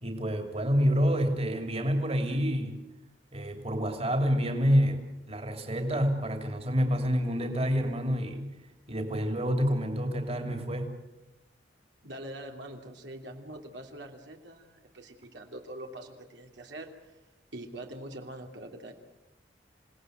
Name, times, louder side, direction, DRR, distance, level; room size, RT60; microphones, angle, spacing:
voice 1, 0.0-2.7 3.3-5.0 5.3-8.5 8.9-10.9, equal, 35° right, 4 dB, 3.1 m, -28 dB
voice 2, 12.0-17.2 17.5-18.9, right 1 dB, 75° right, 2 dB, 3.0 m, -44 dB
28.5 x 18.0 x 8.1 m, 0.98 s
head